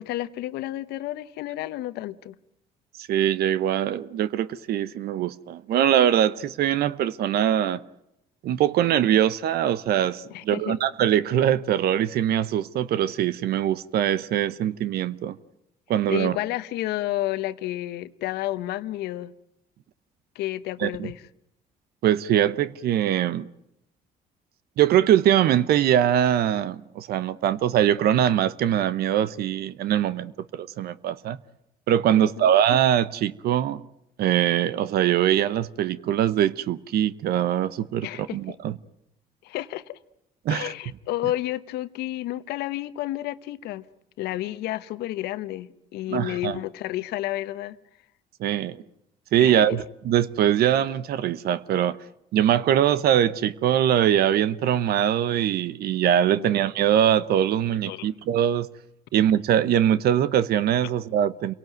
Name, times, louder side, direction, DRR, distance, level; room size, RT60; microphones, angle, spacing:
voice 1, 0.0-2.4 10.3-10.8 16.1-19.3 20.3-21.2 32.2-32.5 38.0-38.4 39.4-40.0 40.5-43.9 44.2-47.8 49.4-49.8 56.4-56.6 57.9-58.2 60.8-60.9, left 15 dB, 80° left, 1.1 m, -31 dB
voice 2, 3.0-7.8 8.4-15.4 15.9-16.4 20.8-21.1 22.0-23.5 24.8-31.4 31.9-33.8 34.2-38.7 40.4-40.7 46.1-46.6 48.4-48.8 49.3-52.0 52.3-58.7 59.1-61.5, right 10 dB, 70° right, 1.0 m, -22 dB
28.0 x 18.0 x 9.3 m
supercardioid pair, 75°, 17 cm